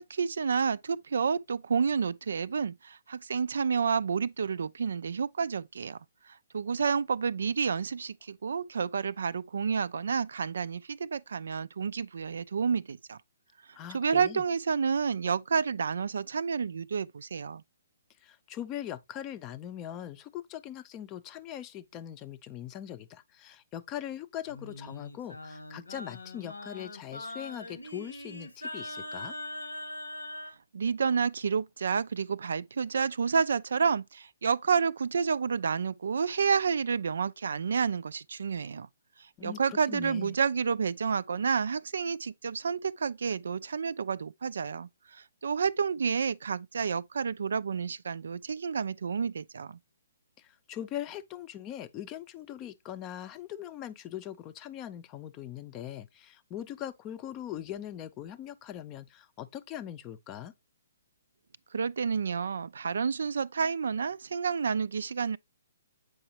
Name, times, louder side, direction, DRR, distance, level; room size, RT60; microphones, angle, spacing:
voice 1, 0.0-6.0 6.3-13.2 13.7-17.6 30.7-38.9 39.2-49.8 61.7-65.4, right 6 dB, 65° right, 0.3 m, -30 dB
voice 2, 13.7-14.4 18.2-29.4 39.4-40.4 50.4-60.5, left 11 dB, 25° left, 0.5 m, -41 dB
Singing, 24.5-30.5, left 1 dB, 85° left, 1.2 m, -41 dB
7.7 x 4.8 x 2.8 m
figure-of-eight pair, 130°, 0 cm